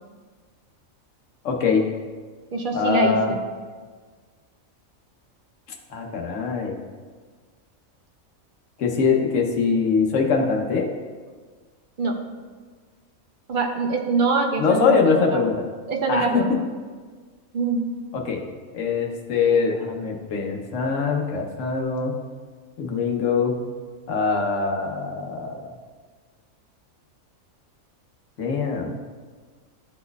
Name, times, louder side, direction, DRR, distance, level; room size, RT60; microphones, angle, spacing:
voice 1, 1.4-1.8 2.7-3.3 5.9-6.8 8.8-10.9 14.6-15.5 16.1-16.6 18.1-18.4 18.7-22.2 22.8-23.5 24.1-25.7 28.4-29.0, left 5 dB, 65° left, 1 dB, 1.1 m, -23 dB
voice 2, 2.5-3.4 12.0-12.2 13.5-15.4 15.9-16.7 17.5-17.9, right 3 dB, 55° right, 2 dB, 0.6 m, -24 dB
11.5 x 4.2 x 2.3 m, 1.5 s
omnidirectional pair, 1.4 m